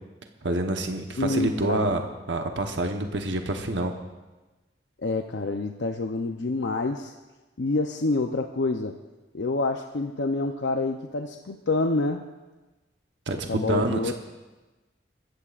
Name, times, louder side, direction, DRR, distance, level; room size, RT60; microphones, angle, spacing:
voice 1, 0.4-2.0 2.3-3.9 13.3-14.1, right 2 dB, 85° right, 4 dB, 1.0 m, -27 dB
voice 2, 1.2-1.9 5.0-7.1 7.6-9.0 9.3-12.3 13.5-14.1, left 3 dB, 75° left, 5 dB, 0.6 m, -27 dB
22.0 x 14.5 x 2.5 m, 1.1 s
head